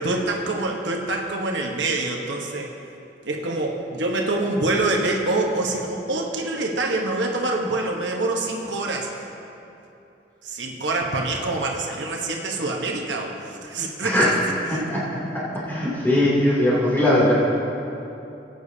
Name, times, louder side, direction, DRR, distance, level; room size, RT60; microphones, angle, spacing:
voice 1, 0.0-2.7 3.2-9.1 10.4-14.3 14.7-14.9, right 2 dB, 80° right, 1 dB, 1.1 m, -25 dB
voice 2, 15.3-17.3, left 1 dB, 10° left, -8 dB, 2.8 m, -20 dB
18.5 x 9.1 x 2.8 m, 2.9 s
head